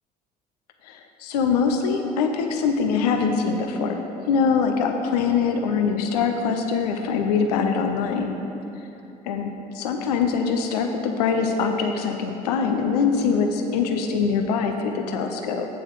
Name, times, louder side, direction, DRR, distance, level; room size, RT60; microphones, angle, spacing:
voice 1, 0.8-8.4 9.2-9.5 9.7-15.7, left 5 dB, 80° left, 5 dB, 0.6 m, -23 dB
8.3 x 7.0 x 4.6 m, 3.0 s
hypercardioid pair, 60°, 20 cm